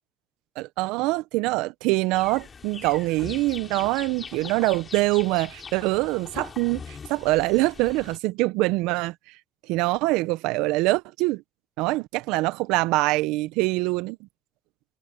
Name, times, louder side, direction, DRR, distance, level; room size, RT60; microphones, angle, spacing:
voice 1, 0.6-9.1 9.7-11.4 11.8-14.2, right 21 dB, 80° right, 1.4 m, -24 dB
hummingbird fight, 2.1-8.2, left 5 dB, 45° left, 7.4 m, -41 dB
hypercardioid pair, 45°, 0 cm